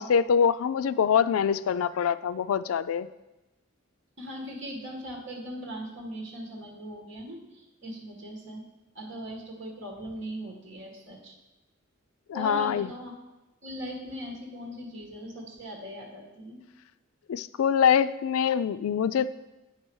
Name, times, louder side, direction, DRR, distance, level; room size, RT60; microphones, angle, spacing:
voice 1, 0.0-3.1 12.3-12.9 17.3-19.3, left 7 dB, 85° left, 15 dB, 0.3 m, -24 dB
voice 2, 4.2-8.6 9.0-11.3 12.3-13.1 13.6-16.6, equal, 60° right, 0 dB, 1.8 m, -39 dB
8.6 x 4.4 x 6.2 m, 1.0 s
head